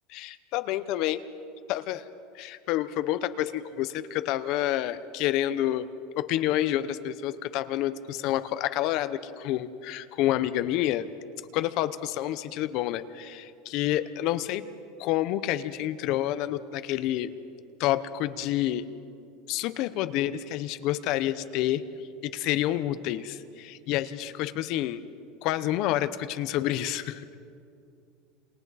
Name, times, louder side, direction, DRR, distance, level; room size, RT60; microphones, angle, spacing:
voice 1, 0.1-1.2 1.7-2.0 2.3-5.9 6.2-11.1 11.5-14.6 15.0-17.3 17.8-18.8 19.5-21.8 22.2-25.0 25.4-27.4, left 13 dB, 50° left, 13 dB, 0.7 m, -28 dB
28.5 x 27.5 x 4.2 m, 2.5 s
supercardioid pair, 150°, 0 cm